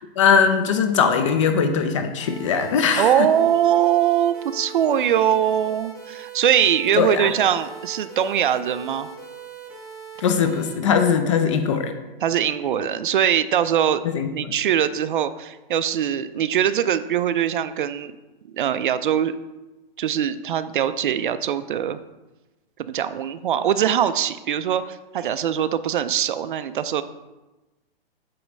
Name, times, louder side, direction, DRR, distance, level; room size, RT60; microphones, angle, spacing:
voice 1, 0.2-3.3 6.9-7.3 10.2-11.9 14.0-14.5, left 6 dB, 30° left, 8 dB, 0.5 m, -20 dB
sound 1, 2.2-10.7, right 6 dB, ahead, 1.8 m, -40 dB
voice 2, 3.0-9.1 12.2-14.0 14.3-18.1 18.5-19.4 20.0-22.0 22.8-27.0, right 9 dB, 55° right, 13 dB, 0.4 m, -22 dB
8.5 x 3.2 x 6.1 m, 1.1 s
hypercardioid pair, 160°, 30 cm